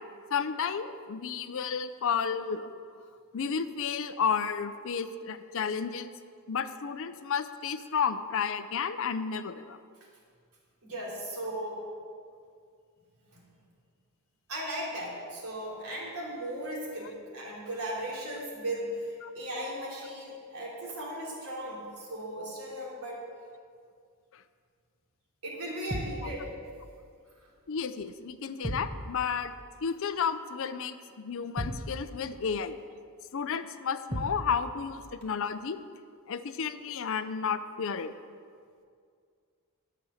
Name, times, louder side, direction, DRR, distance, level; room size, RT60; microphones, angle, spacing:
voice 1, 0.3-2.7 3.3-6.1 6.5-9.8 19.2-19.3 24.3-24.4 26.2-26.3 27.7-29.5 29.8-32.8 33.3-35.8 36.3-38.1, left 6 dB, 60° left, 12 dB, 0.5 m, -32 dB
voice 2, 10.8-11.9 13.3-13.4 14.5-23.2 25.4-26.6 27.4-27.5, right 1 dB, 80° right, -5 dB, 3.2 m, -37 dB
sound 1, 25.9-26.3 28.6-29.0 31.6-31.9 34.1-34.5, equal, 20° right, 1.1 m, -34 dB
11.5 x 6.9 x 6.4 m, 2.2 s
head